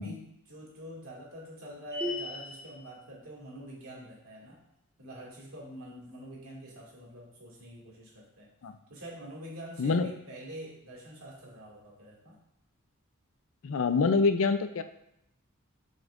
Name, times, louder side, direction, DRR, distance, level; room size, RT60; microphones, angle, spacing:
voice 1, 0.0-4.6 5.0-8.5 8.9-12.4, equal, 70° right, -4 dB, 2.2 m, -45 dB
sound 1, 1.9-2.8, left 1 dB, 15° right, 0.8 m, -36 dB
voice 2, 9.8-10.1 13.6-14.8, left 4 dB, 60° left, 10 dB, 0.4 m, -26 dB
7.0 x 6.1 x 2.5 m, 0.82 s
head